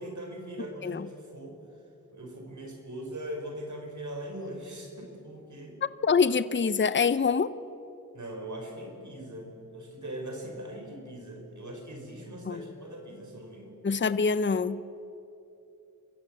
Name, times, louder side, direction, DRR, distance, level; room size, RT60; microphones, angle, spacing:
voice 1, 0.0-1.6 2.1-5.8 8.1-13.8, right 1 dB, 55° right, 2 dB, 4.6 m, -40 dB
voice 2, 6.0-7.5 12.5-12.6 13.8-14.8, left 5 dB, 35° left, 16 dB, 0.7 m, -25 dB
26.0 x 15.0 x 7.3 m, 2.9 s
cardioid pair, 45°, 35 cm